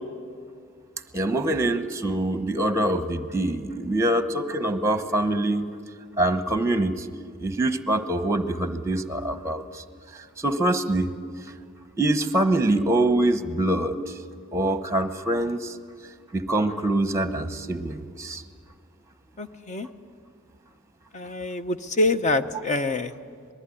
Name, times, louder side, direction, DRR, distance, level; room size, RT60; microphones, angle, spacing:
voice 1, 1.1-5.7 6.2-7.0 7.4-9.8 10.4-11.1 12.0-14.0 14.5-15.7 16.3-18.4, right 1 dB, 15° right, 10 dB, 1.0 m, -24 dB
voice 2, 19.4-19.9 21.1-23.1, left 2 dB, 35° left, 10 dB, 0.9 m, -25 dB
26.0 x 20.0 x 10.0 m, 2.2 s
head